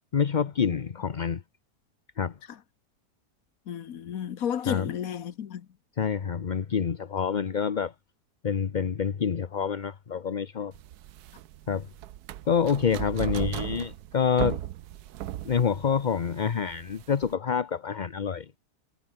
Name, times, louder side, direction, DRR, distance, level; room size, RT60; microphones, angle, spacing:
voice 1, 0.1-1.4 2.2-2.3 4.7-4.9 6.0-7.9 8.4-10.7 11.7-11.9 12.5-14.6 15.4-18.6, left 7 dB, 40° left, 0.7 m, -27 dB
voice 2, 3.7-5.7, left 9 dB, 65° left, 1.4 m, -32 dB
sound 1, 10.7-17.3, right 13 dB, 75° right, 1.2 m, -37 dB
omnidirectional pair, 1.7 m